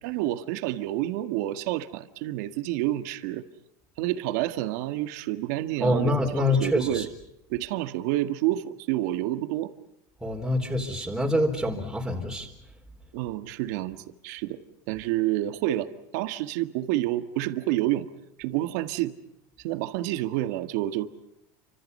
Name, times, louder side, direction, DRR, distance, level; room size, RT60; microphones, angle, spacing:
voice 1, 0.0-3.5 4.0-7.1 7.5-9.7 10.9-11.0 13.1-14.6 14.9-18.1 18.4-19.2 19.6-21.1, right 15 dB, 70° right, 9 dB, 1.8 m, -29 dB
voice 2, 5.8-7.1 10.2-12.5, left 1 dB, 5° right, -2 dB, 4.0 m, -25 dB
30.0 x 26.0 x 5.6 m, 0.82 s
supercardioid pair, 135°, 9 cm